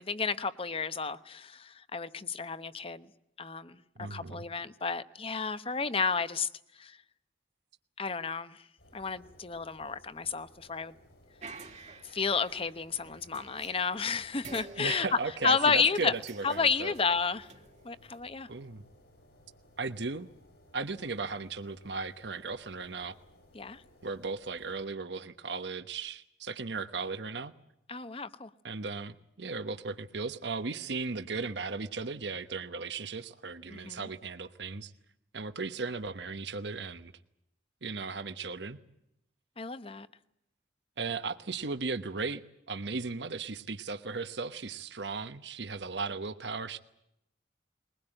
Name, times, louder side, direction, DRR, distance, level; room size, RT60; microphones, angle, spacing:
voice 1, 0.0-3.1 3.4-6.5 6.8-7.0 8.0-8.6 8.9-10.9 12.1-15.1 15.4-16.1 16.4-17.5 17.8-18.5 23.5-23.8 27.9-28.5 33.7-34.1 39.6-40.1, left 5 dB, 30° left, 0.9 m, -31 dB
voice 2, 4.0-4.5 14.8-16.9 18.5-18.8 19.8-20.3 20.7-23.2 24.0-27.5 28.6-34.9 35.3-37.1 37.8-38.8 41.0-42.4 42.7-46.8, right 4 dB, 80° right, 1.1 m, -36 dB
sound 1, 8.8-24.9, left 1 dB, 70° left, 6.2 m, -60 dB
sound 2, 11.4-14.1 14.4-18.2, right 3 dB, 40° right, 1.6 m, -50 dB
22.0 x 20.5 x 8.9 m
head